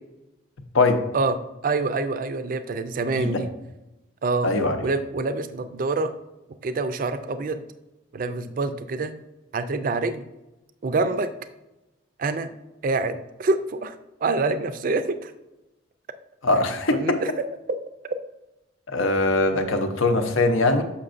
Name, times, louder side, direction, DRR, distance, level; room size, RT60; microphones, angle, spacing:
voice 1, 1.6-3.5 4.2-4.5 4.8-6.1 6.6-7.6 8.1-9.1 9.5-10.2 10.8-11.3 12.2-12.5 12.8-13.9 14.2-15.3 16.9-17.3 18.0-18.1, right 3 dB, 45° right, 11 dB, 0.3 m, -26 dB
voice 2, 3.1-3.4 4.4-4.8 16.4-17.2 18.9-20.8, left 2 dB, 85° left, 7 dB, 0.7 m, -21 dB
6.6 x 5.7 x 2.5 m, 0.99 s
head